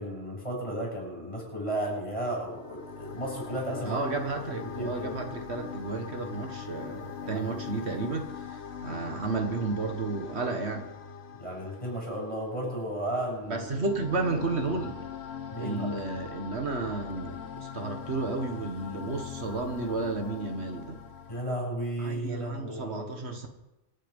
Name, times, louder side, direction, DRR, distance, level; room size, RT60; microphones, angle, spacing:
voice 1, 0.0-4.0 4.5-5.1 7.2-7.6 11.4-13.7 15.5-15.9 21.3-23.1, right 1 dB, 30° left, -2 dB, 7.2 m, -34 dB
sound 1, 1.8-21.4, left 7 dB, 75° left, 1.4 m, -42 dB
voice 2, 3.8-10.9 13.5-15.0 15.6-21.0 22.0-23.5, right 3 dB, 80° right, 4 dB, 2.0 m, -32 dB
25.5 x 8.9 x 5.5 m, 0.95 s
omnidirectional pair, 1.1 m